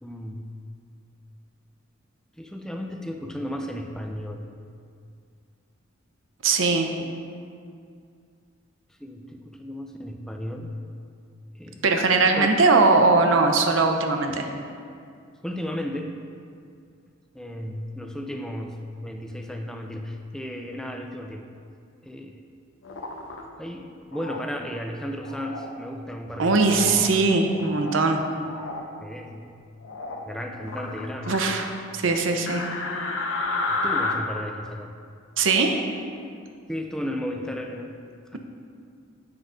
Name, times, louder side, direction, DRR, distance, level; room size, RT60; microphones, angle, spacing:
voice 1, 0.0-0.5 2.4-4.5 7.0-7.1 9.0-10.7 11.6-11.9 12.4-12.5 15.4-16.1 17.3-21.5 22.0-22.4 23.6-27.0 29.0-29.6 30.2-31.4 33.7-34.9 36.7-38.0 38.3-38.4, equal, 5° left, 3 dB, 0.4 m, -34 dB
voice 2, 6.4-6.9 11.8-14.5 26.4-28.2 31.3-32.6 35.4-35.8, right 3 dB, 70° right, 4 dB, 0.6 m, -20 dB
sound 1, 22.8-23.4 24.1-24.4 25.2-25.7 26.6-27.0 27.5-28.1 28.4-28.8 29.8-30.2 30.6-31.6 32.5-34.1, left 3 dB, 75° left, 0.6 m, -31 dB
8.2 x 3.9 x 5.0 m, 2.3 s
head